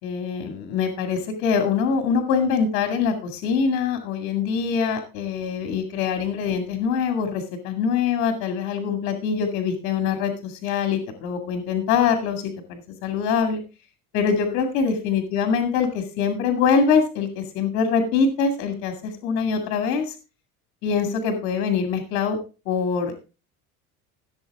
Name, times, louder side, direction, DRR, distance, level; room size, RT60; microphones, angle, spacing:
voice 1, 0.0-13.6 14.1-20.1 20.8-22.4 22.7-23.1, left 6 dB, 65° left, 5 dB, 2.2 m, -24 dB
16.5 x 7.1 x 3.6 m, 0.32 s
cardioid pair, 150°, 30 cm